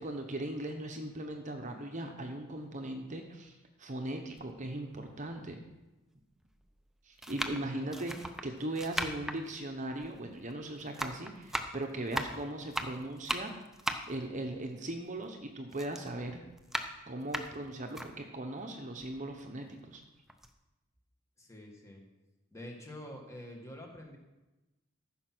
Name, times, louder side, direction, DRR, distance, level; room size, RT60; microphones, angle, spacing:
voice 1, 0.0-5.6 7.0-13.5 14.0-16.4 17.1-20.0, right 1 dB, 35° right, 4 dB, 0.9 m, -39 dB
sound 1, 4.4-4.5 5.4-5.5 6.4-6.7 7.2-10.6 10.8-15.4 15.7-18.1 18.6-18.7 19.0-20.0 20.3-20.5, right 1 dB, ahead, 0.6 m, -38 dB
voice 2, 7.6-8.2 12.1-12.4 21.4-22.0 22.5-24.2, left 1 dB, 15° left, 1 dB, 1.7 m, -48 dB
14.5 x 5.9 x 6.1 m, 1.1 s
head